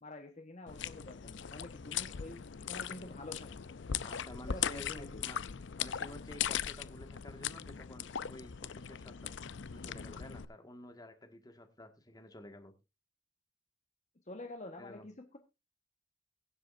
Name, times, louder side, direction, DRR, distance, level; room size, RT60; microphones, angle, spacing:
voice 1, 0.0-3.8 4.5-5.2 14.3-15.4, left 2 dB, 40° left, 5 dB, 1.3 m, -48 dB
sound 1, 0.7-10.5, left 8 dB, 65° left, 0.6 m, -39 dB
voice 2, 4.0-5.4 5.8-9.3 9.7-12.7 14.8-15.1, left 1 dB, 20° left, 5 dB, 1.8 m, -51 dB
22.5 x 7.7 x 2.6 m, 0.26 s
head